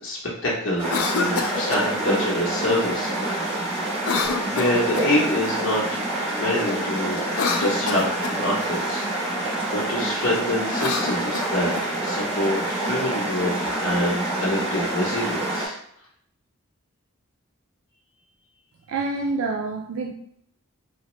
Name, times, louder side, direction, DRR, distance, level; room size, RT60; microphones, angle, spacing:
voice 1, 0.0-3.7 4.4-6.0 6.3-7.2 7.5-11.7 12.0-13.5 13.8-15.8, left 1 dB, 60° left, -5 dB, 0.8 m, -26 dB
Cough, 0.8-1.9 4.0-5.2 7.2-8.4 10.6-11.9, left 5 dB, 85° left, 0.4 m, -28 dB
sound 1, 0.8-15.7, right 2 dB, 30° right, 1.0 m, -27 dB
voice 2, 18.9-20.1, right 3 dB, 80° right, 1 dB, 0.4 m, -27 dB
2.8 x 2.1 x 3.0 m, 0.70 s
head